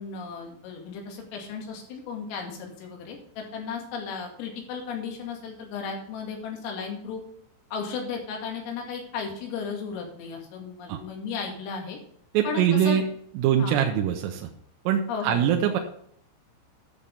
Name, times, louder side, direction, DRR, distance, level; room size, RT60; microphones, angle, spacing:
voice 1, 0.0-7.2 7.7-12.0 12.4-13.0 13.6-13.8 15.1-15.4, left 5 dB, 80° left, 1 dB, 4.8 m, -35 dB
voice 2, 12.4-13.1 13.4-14.5 14.9-15.8, right 9 dB, 85° right, 3 dB, 3.5 m, -23 dB
10.5 x 7.4 x 5.4 m, 0.66 s
omnidirectional pair, 5.9 m